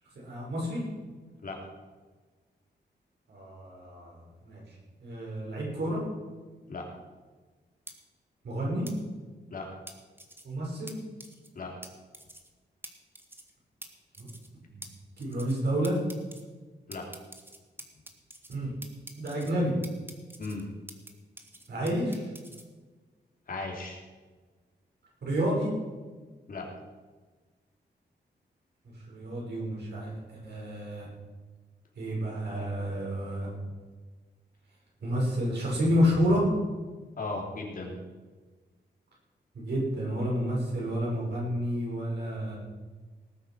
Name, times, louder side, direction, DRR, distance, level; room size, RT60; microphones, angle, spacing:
voice 1, 0.2-0.8 3.3-4.2 4.4-4.6 5.0-6.0 8.4-8.9 10.4-11.0 14.2-14.3 14.7-14.8 15.2-16.0 18.5-18.7 19.2-19.7 21.7-22.3 25.2-25.7 28.8-31.1 32.0-33.5 35.0-36.5 39.5-42.6, equal, 70° right, -3 dB, 6.0 m, -30 dB
sound 1, 7.9-8.0 8.9-9.0 9.9-10.4 10.9-11.0 11.2-11.5 11.8-11.9 12.1-12.5 12.8-12.9 13.1-13.5 13.8-13.9 14.1-14.5 14.8-14.9 15.2-15.6 15.8-16.4 16.9-18.6 18.8-19.5 19.8-21.1 21.4-22.6, right 1 dB, 10° right, 1.3 m, -46 dB
voice 2, 23.5-24.0 26.5-26.7 37.2-37.9, left 3 dB, 50° left, 0 dB, 3.0 m, -36 dB
18.5 x 8.3 x 6.2 m, 1.4 s
wide cardioid pair, 160°, 18 cm